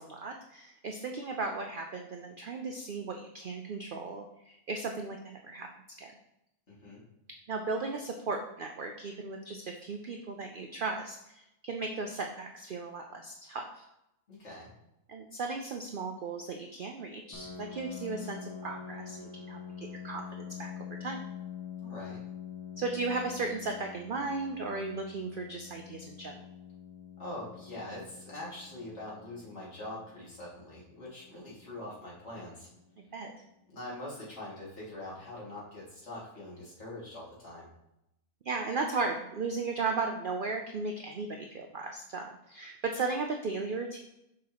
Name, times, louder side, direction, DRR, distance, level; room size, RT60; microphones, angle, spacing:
voice 1, 0.0-5.2 5.4-5.7 6.0-6.1 7.5-13.7 15.1-21.2 22.8-26.4 33.1-33.3 38.5-44.0, right 3 dB, 85° right, 3 dB, 0.4 m, -36 dB
voice 2, 6.7-7.0 14.3-14.7 21.8-22.2 27.2-32.7 33.7-37.7, left 1 dB, 50° left, -7 dB, 2.6 m, -43 dB
Piano, 17.3-32.7, left 8 dB, 20° left, 0.6 m, -46 dB
6.1 x 5.6 x 2.9 m, 0.85 s
omnidirectional pair, 1.5 m